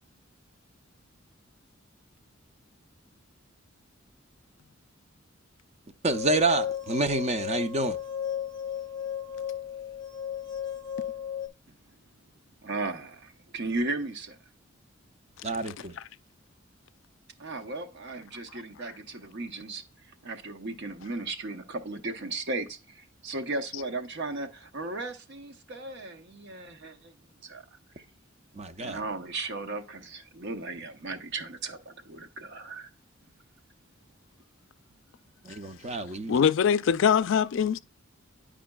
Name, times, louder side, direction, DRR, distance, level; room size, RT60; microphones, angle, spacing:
voice 1, 6.0-8.0 15.4-16.0 28.5-29.0 35.4-36.4, right 2 dB, 35° right, 0.5 m, -28 dB
sound 1, 6.1-11.5, left 9 dB, 20° left, 0.6 m, -34 dB
voice 2, 12.6-14.4 17.4-19.8 20.2-27.1 27.4-27.6 28.0-28.1 28.8-32.9, right 2 dB, 60° right, 0.8 m, -36 dB
voice 3, 36.3-37.8, left 7 dB, 65° left, 0.3 m, -22 dB
9.5 x 5.0 x 2.2 m
head